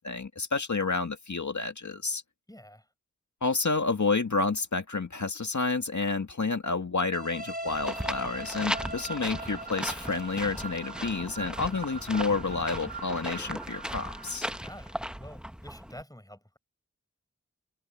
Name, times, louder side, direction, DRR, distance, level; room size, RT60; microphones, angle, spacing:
voice 1, 0.0-2.2 3.4-14.5, left 4 dB, 75° left, 2.2 m, -30 dB
voice 2, 2.5-2.9 14.6-16.6, equal, 10° left, 5.0 m, -48 dB
sound 1, 7.1-14.9, right 3 dB, 30° right, 3.7 m, -41 dB
sound 2, 7.7-16.0, equal, 5° right, 1.1 m, -37 dB
open air
wide cardioid pair, 45°, 29 cm